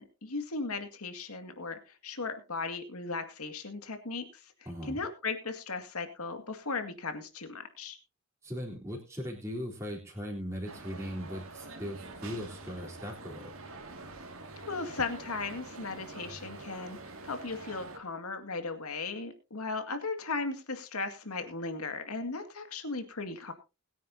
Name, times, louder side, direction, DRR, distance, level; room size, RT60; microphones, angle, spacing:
voice 1, 0.0-4.5 4.8-8.0 14.7-23.5, left 3 dB, 85° left, 7 dB, 2.1 m, -37 dB
voice 2, 4.7-5.0 8.4-13.5, equal, 15° right, -3 dB, 3.6 m, -39 dB
sound 1, 10.7-18.0, right 3 dB, 70° right, 2.2 m, -46 dB
21.0 x 9.4 x 2.8 m, 0.29 s
head